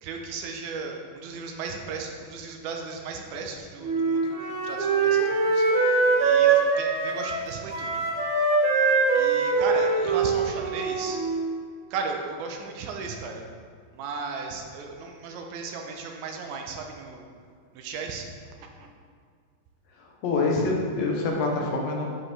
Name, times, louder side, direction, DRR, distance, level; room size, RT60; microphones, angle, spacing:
voice 1, 0.0-8.0 9.1-11.2 11.9-13.4 13.9-17.2 17.7-18.3 18.6-18.9, right 4 dB, 85° right, 3 dB, 2.1 m, -36 dB
Wind instrument woodwind instrument, 3.8-11.6, right 4 dB, 65° right, 1.3 m, -23 dB
voice 2, 20.2-22.0, left 3 dB, 70° left, -1 dB, 1.9 m, -25 dB
9.7 x 4.8 x 3.3 m, 2.1 s
omnidirectional pair, 3.3 m